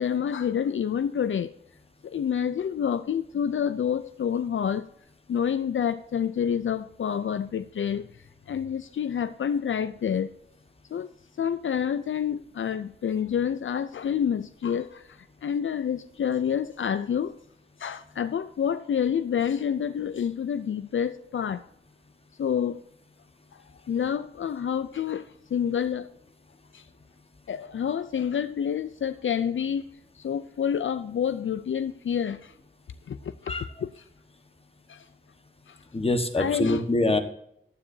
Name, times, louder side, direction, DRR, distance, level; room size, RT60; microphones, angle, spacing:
voice 1, 0.0-1.5 2.0-4.9 5.3-8.1 8.5-10.3 10.9-11.1 11.4-17.4 17.8-21.6 22.4-22.8 23.5-23.6 23.9-26.1 26.7-26.9 27.5-29.8 30.1-32.5 33.1-34.0 34.9-35.1 35.7-35.8 36.4-36.8, left 8 dB, 70° left, 0.4 m, -28 dB
voice 2, 35.9-37.2, left 2 dB, 30° left, 1.3 m, -24 dB
14.0 x 9.9 x 2.7 m
wide cardioid pair, 85°, 21 cm